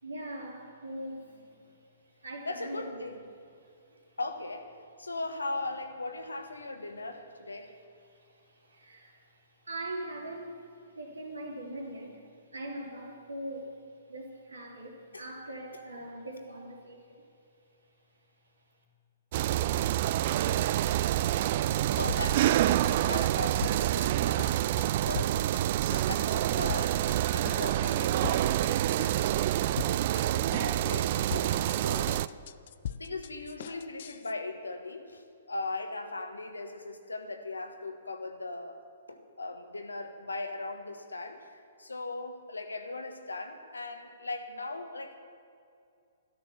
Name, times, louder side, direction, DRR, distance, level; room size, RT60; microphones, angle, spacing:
voice 1, 0.0-1.6 2.2-2.8 3.6-4.2 8.1-12.2 12.5-13.8 14.1-17.2, right 1 dB, 80° right, -1 dB, 3.6 m, -42 dB
voice 2, 2.4-3.2 4.2-7.8 15.1-15.3 22.0-25.4 26.0-27.0 27.3-32.2 32.9-45.2, left 2 dB, 80° left, 7 dB, 1.5 m, -39 dB
sound 1, 19.3-32.3, right 13 dB, 45° right, 0.4 m, -27 dB
sound 2, 22.1-22.6 22.8-24.1 24.4-24.9 25.2-25.6 25.9-27.2 27.5-27.9 28.2-28.7 29.0-30.2 30.5-31.0 31.3-34.3, left 9 dB, 55° left, 0.5 m, -41 dB
13.0 x 13.0 x 7.2 m, 2.5 s
figure-of-eight pair, 120°, 0 cm